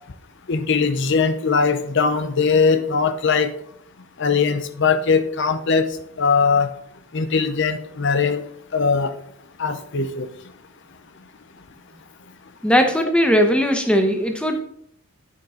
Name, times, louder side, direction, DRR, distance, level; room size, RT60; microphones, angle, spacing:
voice 1, 0.5-3.5 4.2-5.9 6.2-6.7 7.1-8.4 8.7-9.1 9.6-10.3, left 5 dB, 60° left, 11 dB, 0.7 m, -20 dB
voice 2, 12.6-14.6, equal, 5° left, 5 dB, 0.9 m, -18 dB
9.4 x 5.6 x 3.8 m, 0.68 s
head